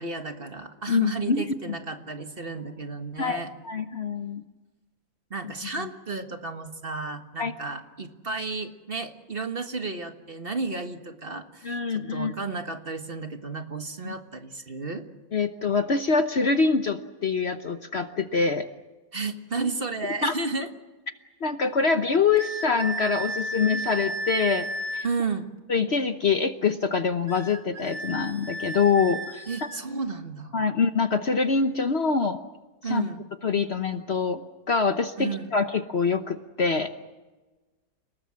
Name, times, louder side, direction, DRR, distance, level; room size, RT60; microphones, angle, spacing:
voice 1, 0.0-3.5 5.3-15.0 19.1-20.7 25.0-25.5 29.5-30.6 32.8-33.2 35.2-35.5, right 4 dB, 35° right, 6 dB, 1.7 m, -33 dB
voice 2, 0.9-1.4 3.2-4.4 7.4-7.5 11.6-12.3 14.0-14.1 15.3-18.7 20.2-20.3 21.4-24.7 24.9-25.0 25.7-29.5 30.5-32.4 32.8-33.0 33.4-34.4 34.7-36.9, left 5 dB, 45° left, 8 dB, 1.1 m, -25 dB
sound 1, 22.4-25.1 27.3-29.8, right 1 dB, 70° right, 2.4 m, -33 dB
30.0 x 19.0 x 7.5 m, 1.2 s
omnidirectional pair, 1.7 m